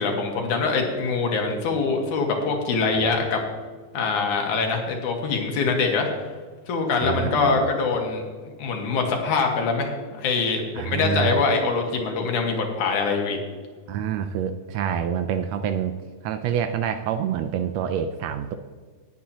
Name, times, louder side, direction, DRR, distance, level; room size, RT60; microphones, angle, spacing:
voice 1, 0.0-3.4 3.9-6.1 6.7-13.4, left 4 dB, 90° left, 2 dB, 3.0 m, -24 dB
voice 2, 7.0-7.7 10.7-11.5 13.9-16.0 16.2-18.6, right 8 dB, 80° right, 9 dB, 1.6 m, -27 dB
19.5 x 8.6 x 2.9 m, 1.5 s
omnidirectional pair, 3.4 m